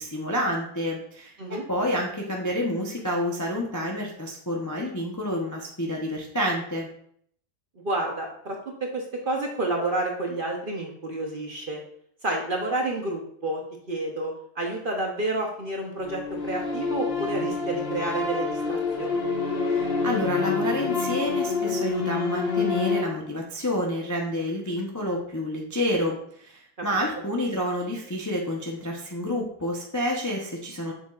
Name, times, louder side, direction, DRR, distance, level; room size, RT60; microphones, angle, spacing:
voice 1, 0.0-6.9 19.6-30.9, equal, 20° left, -1 dB, 0.5 m, -29 dB
voice 2, 7.8-11.8 12.2-13.6 13.9-19.3, right 2 dB, 45° right, 0 dB, 0.8 m, -30 dB
sound 1, 16.0-23.0, left 4 dB, 45° left, 0.8 m, -27 dB
6.9 x 5.8 x 2.4 m, 0.65 s
omnidirectional pair, 1.6 m